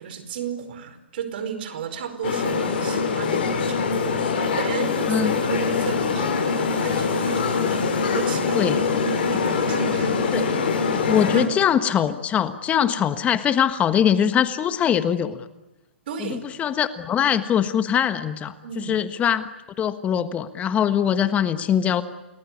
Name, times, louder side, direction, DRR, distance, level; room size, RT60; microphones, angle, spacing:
voice 1, 0.0-8.8 9.3-10.3 10.6-10.7 11.3-11.4 16.1-16.5 18.6-19.1, right 7 dB, 60° right, 11 dB, 4.9 m, -34 dB
sound 1, 2.2-11.4, left 5 dB, 60° left, 6.6 m, -23 dB
voice 2, 11.0-15.5 16.2-19.5 19.8-22.0, left 9 dB, 20° left, 11 dB, 1.4 m, -22 dB
30.0 x 20.0 x 9.7 m, 1.0 s
hypercardioid pair, 125°, 6 cm